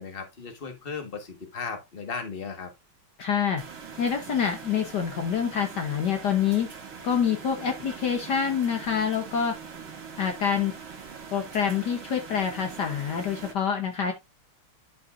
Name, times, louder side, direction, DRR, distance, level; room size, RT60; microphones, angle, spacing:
voice 1, 0.0-2.7, left 5 dB, 30° left, 1.7 m, -36 dB
voice 2, 3.2-3.6 4.0-6.7 7.0-9.6 10.2-10.7 11.3-14.1, left 7 dB, 60° left, 1.6 m, -26 dB
sound 1, 3.6-13.5, right 6 dB, 65° right, 2.6 m, -42 dB
11.5 x 5.6 x 2.6 m
omnidirectional pair, 2.3 m